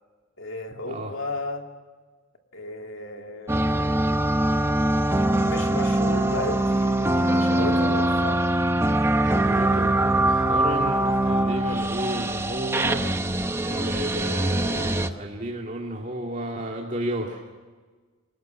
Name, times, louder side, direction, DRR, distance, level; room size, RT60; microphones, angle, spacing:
voice 1, 0.4-1.7 2.5-4.1 5.4-8.5, left 2 dB, 75° left, 3 dB, 2.6 m, -33 dB
sound 1, 3.5-15.1, right 1 dB, 10° right, 0.7 m, -23 dB
voice 2, 9.2-13.0 13.6-17.4, right 1 dB, 35° right, 0 dB, 2.2 m, -32 dB
28.5 x 19.0 x 7.4 m, 1.4 s
head